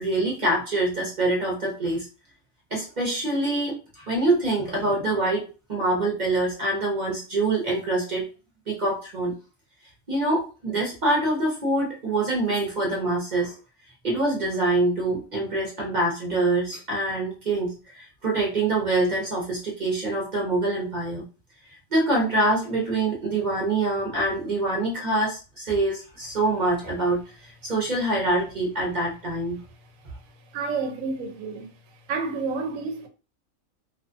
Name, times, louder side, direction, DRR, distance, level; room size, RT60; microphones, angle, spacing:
voice 1, 0.0-2.1 2.7-8.3 8.7-9.3 10.1-13.5 14.0-21.2 21.9-29.6, right 2 dB, 40° right, 0.7 m, -25 dB
voice 2, 30.5-31.7 32.1-33.1, right 4 dB, 75° right, 1.0 m, -29 dB
2.5 x 2.4 x 2.4 m
omnidirectional pair, 1.5 m